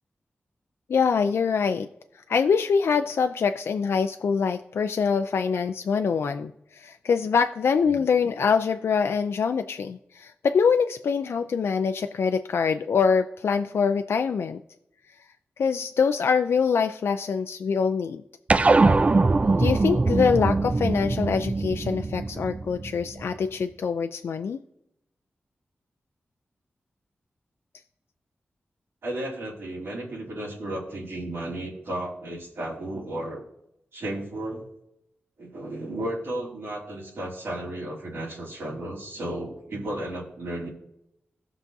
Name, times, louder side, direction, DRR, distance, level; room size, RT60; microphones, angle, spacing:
voice 1, 0.9-1.9 2.3-14.6 15.6-18.2 19.6-24.6, left 6 dB, 85° left, 7 dB, 0.4 m, -24 dB
sound 1, 18.5-23.2, right 3 dB, 30° right, 0.3 m, -22 dB
voice 2, 29.0-33.5 33.9-34.6 35.4-40.7, right 1 dB, 85° right, -5 dB, 2.8 m, -34 dB
17.0 x 5.9 x 2.7 m, 0.80 s
wide cardioid pair, 95°, 4 cm